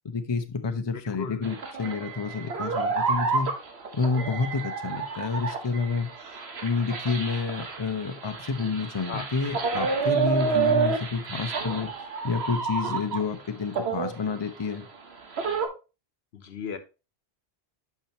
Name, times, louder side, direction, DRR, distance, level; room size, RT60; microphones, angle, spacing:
voice 1, 0.0-3.5 3.9-6.1 6.6-11.9 12.2-14.9, left 4 dB, 30° left, 0.7 m, -29 dB
voice 2, 0.9-1.5 9.1-9.2 16.3-16.8, left 6 dB, 80° left, 1.1 m, -36 dB
sound 1, 1.4-13.4 13.7-15.7, right 5 dB, 85° right, 1.4 m, -29 dB
8.8 x 5.8 x 2.9 m
omnidirectional pair, 1.0 m